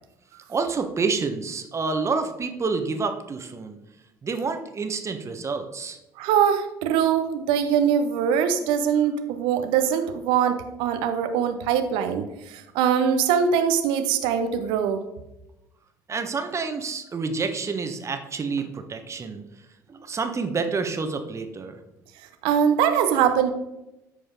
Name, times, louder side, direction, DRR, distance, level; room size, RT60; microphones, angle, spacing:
voice 1, 0.5-3.8 4.2-6.0 16.1-19.4 19.9-21.8, right 4 dB, 30° right, 6 dB, 1.3 m, -28 dB
voice 2, 6.2-15.0 22.4-23.5, right 8 dB, 65° right, 8 dB, 0.9 m, -22 dB
13.5 x 5.0 x 3.9 m, 0.92 s
figure-of-eight pair, 55°, 9 cm